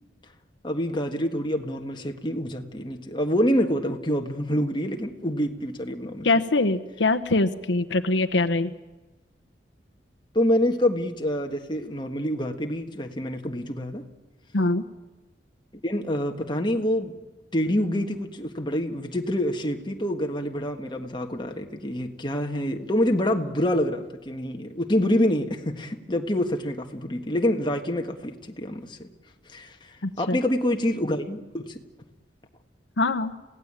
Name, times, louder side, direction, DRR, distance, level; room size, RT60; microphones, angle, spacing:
voice 1, 0.6-6.3 10.3-14.0 15.8-17.1 17.5-29.1 29.5-31.8, left 1 dB, 25° left, 4 dB, 1.6 m, -26 dB
voice 2, 6.2-8.7 14.5-14.8 30.0-30.4 33.0-33.3, left 2 dB, 80° left, 8 dB, 1.0 m, -23 dB
28.0 x 17.0 x 8.9 m, 1.1 s
head